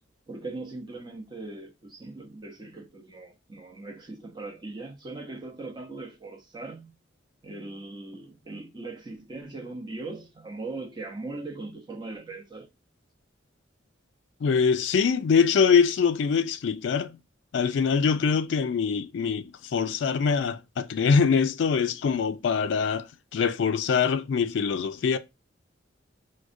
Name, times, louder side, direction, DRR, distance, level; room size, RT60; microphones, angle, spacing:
voice 1, 0.3-6.9 7.4-12.7, right 2 dB, 20° right, 0.6 m, -39 dB
voice 2, 14.4-17.2 17.5-23.1 23.3-25.2, left 6 dB, 65° left, 0.3 m, -23 dB
4.7 x 2.1 x 2.5 m
head